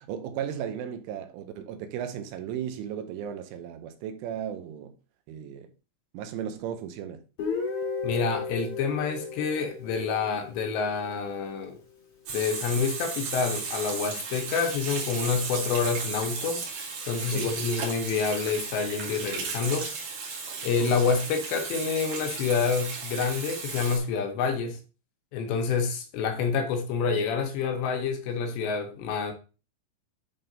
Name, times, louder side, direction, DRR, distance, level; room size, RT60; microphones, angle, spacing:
voice 1, 0.0-4.9 5.3-5.7 6.1-7.2 17.3-17.5, right 9 dB, 80° right, 3.2 m, -35 dB
Guitar, 7.4-11.2, left 4 dB, 55° left, 1.6 m, -35 dB
voice 2, 8.0-11.8 12.3-16.6 17.1-19.9 20.6-24.8 25.3-29.3, left 5 dB, 75° left, 2.7 m, -28 dB
Water tap faucet / Sink (filling or washing), 12.3-24.0, right 5 dB, 55° right, 3.2 m, -35 dB
10.5 x 3.8 x 3.8 m
omnidirectional pair, 5.8 m